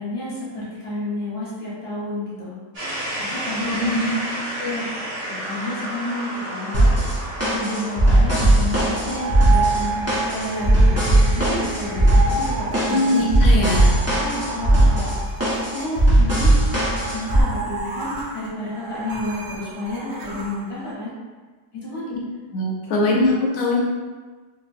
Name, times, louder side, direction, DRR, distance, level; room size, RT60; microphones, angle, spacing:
voice 1, 0.0-2.5 3.2-3.9 4.6-6.9 7.4-11.0 11.3-13.1 14.1-15.1 15.7-16.6 17.0-21.1 21.7-22.1 23.0-23.2, left 1 dB, 40° left, -8 dB, 1.1 m, -30 dB
sound 1, 2.7-12.6, equal, 40° right, 1.1 m, -33 dB
voice 2, 3.6-4.1 12.9-13.9 22.1-22.2 22.5-23.8, left 2 dB, 65° left, -3 dB, 1.1 m, -21 dB
sound 2, 6.7-17.4, right 1 dB, 15° right, 0.5 m, -18 dB
sound 3, 8.7-20.9, right 3 dB, 70° right, 1.1 m, -31 dB
3.3 x 2.9 x 2.5 m, 1.3 s
omnidirectional pair, 1.9 m